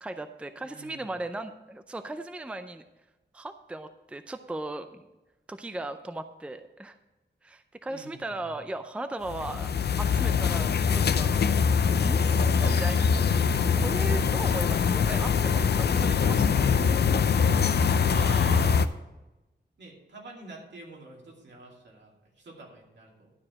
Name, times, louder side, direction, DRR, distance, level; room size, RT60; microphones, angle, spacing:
voice 1, 0.0-2.8 3.3-5.1 5.5-7.0 7.4-9.7 10.0-11.4 12.0-16.7, right 2 dB, 5° right, 9 dB, 0.4 m, -37 dB
voice 2, 0.6-1.1 7.9-8.6 12.7-13.1 18.0-18.9 19.8-23.3, right 2 dB, 75° right, -1 dB, 2.6 m, -45 dB
sound 1, 9.3-18.9, left 6 dB, 65° left, 0.5 m, -23 dB
12.0 x 4.8 x 7.5 m, 1.0 s
wide cardioid pair, 140°, 19 cm